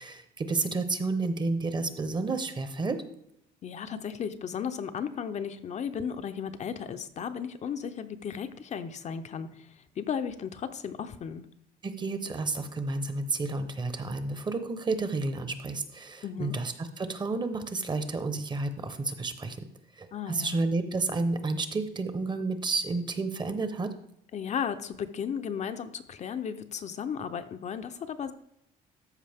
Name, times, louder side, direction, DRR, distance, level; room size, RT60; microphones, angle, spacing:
voice 1, 0.0-3.0 11.8-19.6 20.0-23.9, right 3 dB, 25° right, 9 dB, 0.9 m, -31 dB
voice 2, 3.6-11.4 16.2-16.6 20.1-20.6 24.3-28.3, left 7 dB, 45° left, 9 dB, 0.6 m, -35 dB
13.0 x 5.0 x 3.5 m, 0.77 s
cardioid pair, 110°, 17 cm